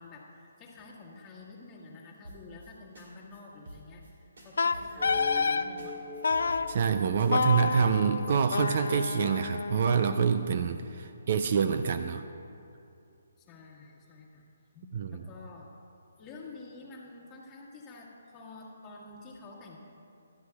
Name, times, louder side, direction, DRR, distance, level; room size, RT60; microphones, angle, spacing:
voice 1, 0.0-4.0 4.4-6.0 13.4-14.4 14.7-15.7 16.2-19.8, left 3 dB, 15° left, -5 dB, 1.7 m, -49 dB
sound 1, 2.2-2.7 2.9-3.1 3.3-3.4 3.7-4.1 4.4-5.5 5.8-5.9 6.1-7.8, right 2 dB, 70° right, 2.9 m, -47 dB
Wind instrument woodwind instrument, 4.6-5.7 6.2-6.7 7.3-10.3, left 5 dB, 75° left, 0.4 m, -29 dB
sound 2, 5.0-9.9, left 3 dB, 20° right, 2.3 m, -44 dB
voice 2, 6.7-12.2 14.9-15.2, right 6 dB, 45° right, 9 dB, 0.4 m, -26 dB
18.0 x 12.5 x 2.4 m, 2.6 s
hypercardioid pair, 160°, 0 cm